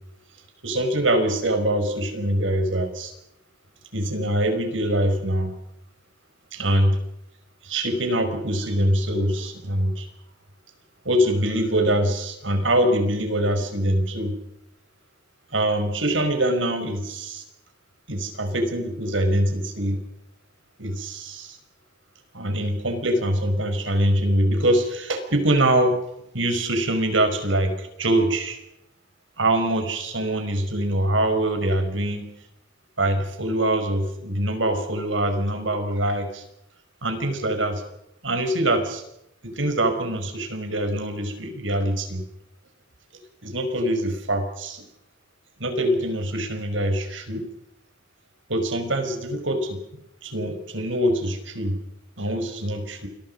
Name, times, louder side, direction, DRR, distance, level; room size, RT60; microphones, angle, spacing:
voice 1, 0.6-3.1 3.9-5.6 6.5-7.0 7.6-10.1 11.1-14.4 15.5-17.4 18.1-20.0 20.8-21.6 22.3-26.0 26.3-28.6 29.4-32.3 33.0-36.4 37.0-37.8 38.2-39.0 39.4-42.2 43.4-44.8 45.6-47.5 48.5-49.8 50.2-51.8 52.2-53.1, right 1 dB, 85° right, 7 dB, 5.2 m, -24 dB
29.0 x 22.5 x 5.5 m, 0.83 s
head